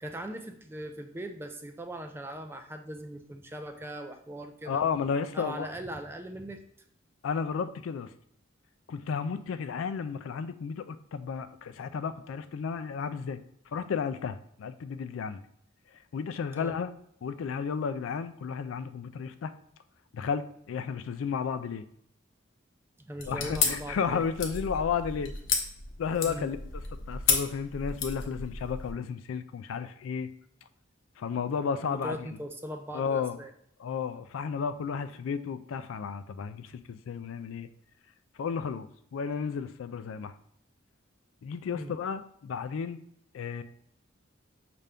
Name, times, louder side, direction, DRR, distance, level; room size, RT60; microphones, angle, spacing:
voice 1, 0.0-4.8 5.3-6.6 16.6-16.8 23.0-24.2 26.2-26.5 31.8-33.5 41.7-41.9, equal, 10° right, 6 dB, 0.3 m, -40 dB
voice 2, 4.7-5.7 7.2-8.1 8.9-13.4 13.7-15.4 15.9-16.9 17.2-19.5 20.1-21.8 23.3-25.3 26.0-26.6 27.1-30.3 31.2-32.3 32.9-33.4 33.8-37.7 38.4-40.3 41.4-43.0 43.3-43.6, left 6 dB, 85° left, 11 dB, 0.3 m, -33 dB
sound 1, 23.2-28.9, left 5 dB, 65° left, 0.7 m, -32 dB
5.5 x 2.5 x 3.4 m, 0.68 s
head